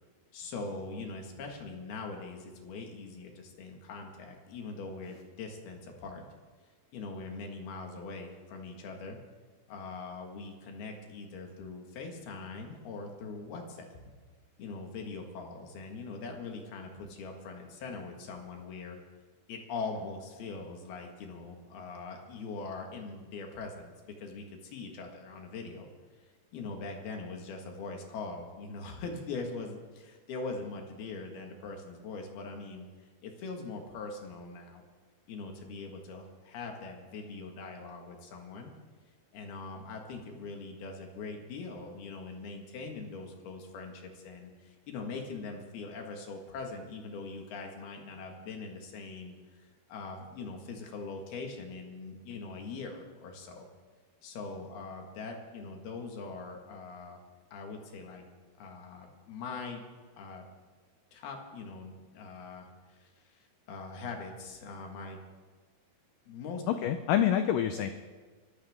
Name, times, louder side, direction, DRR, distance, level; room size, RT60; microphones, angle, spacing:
voice 1, 0.3-6.2 6.9-9.2 9.7-13.9 14.6-19.0 19.5-23.9 24.2-25.9 26.5-32.9 33.2-34.8 35.3-38.7 39.3-53.7 54.2-57.2 57.5-58.3 58.6-59.8 60.2-60.5 61.1-65.2 66.3-66.6, left 3 dB, 70° left, 2 dB, 3.6 m, -42 dB
voice 2, 66.7-67.9, left 10 dB, 90° left, 8 dB, 1.9 m, -27 dB
24.5 x 14.5 x 3.6 m, 1.4 s
omnidirectional pair, 4.7 m